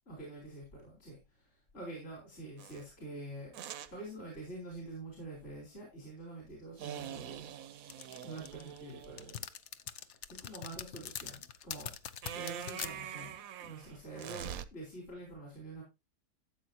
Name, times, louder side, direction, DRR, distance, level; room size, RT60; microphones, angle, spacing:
voice 1, 0.1-3.5 3.9-7.5 8.2-9.4 10.0-11.9 12.3-15.8, right 2 dB, 40° left, -2 dB, 4.5 m, -46 dB
sound 1, 2.6-2.8 3.5-3.9 6.8-9.3 12.2-14.6, right 10 dB, 65° right, 1.0 m, -44 dB
sound 2, 7.9-12.9, left 9 dB, 55° left, 0.8 m, -42 dB
14.0 x 7.7 x 2.8 m, 0.24 s
omnidirectional pair, 1.8 m